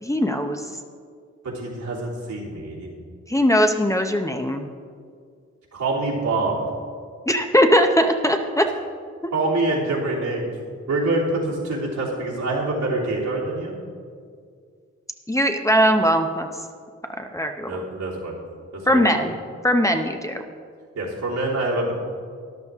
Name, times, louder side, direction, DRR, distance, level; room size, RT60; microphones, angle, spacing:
voice 1, 0.0-0.7 3.3-4.6 7.3-8.7 15.3-16.5 17.2-17.8 18.9-19.4 19.6-20.4, equal, 10° left, 5 dB, 0.7 m, -20 dB
voice 2, 1.4-2.9 5.7-6.6 9.3-10.5 10.9-13.8 17.6-18.3 18.7-19.3 21.0-21.9, right 2 dB, 80° right, -6 dB, 3.3 m, -25 dB
13.0 x 11.0 x 3.6 m, 2.1 s
cardioid pair, 75°, 30 cm